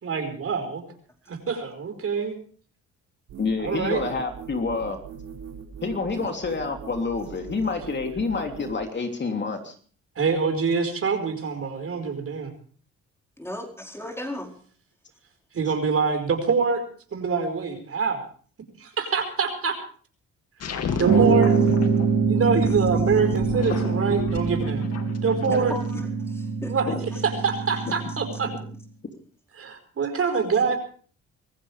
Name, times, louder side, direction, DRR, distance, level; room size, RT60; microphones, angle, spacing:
voice 1, 0.0-0.8 1.3-2.3 3.6-4.0 10.2-12.5 15.5-16.8 17.1-18.2 18.8-19.8 21.0-21.5 22.3-24.8 25.2-25.7 26.7-26.9 27.2-28.5 29.6-30.8, right 5 dB, 50° right, 6 dB, 5.0 m, -25 dB
sound 1, 3.3-8.8, right 7 dB, 90° right, 6.2 m, -40 dB
voice 2, 3.4-5.0 5.8-9.7 25.5-25.6 26.9-27.0 28.4-28.6, left 4 dB, 35° left, 4 dB, 3.1 m, -28 dB
voice 3, 13.4-14.5 20.8-21.3 25.5-26.8 27.1-27.3, left 1 dB, 10° left, 1 dB, 4.7 m, -36 dB
sound 2, 20.6-26.0, left 5 dB, 55° left, 2.4 m, -33 dB
sound 3, 21.0-28.7, right 5 dB, 70° right, 2.7 m, -24 dB
25.0 x 15.5 x 3.4 m, 0.44 s
cardioid pair, 90°, 30 cm